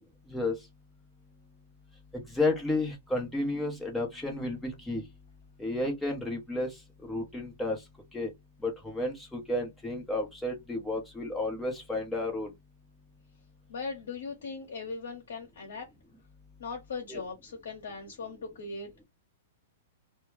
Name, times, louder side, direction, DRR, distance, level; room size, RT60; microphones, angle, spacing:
voice 1, 2.1-5.0 5.6-6.7 7.1-7.8 8.1-8.3 8.6-12.5 17.1-17.2, left 2 dB, 5° left, 0.9 m, -32 dB
voice 2, 13.7-15.9 16.6-19.0, left 4 dB, 85° left, 0.8 m, -39 dB
2.2 x 2.1 x 3.1 m
hypercardioid pair, 145°, 0 cm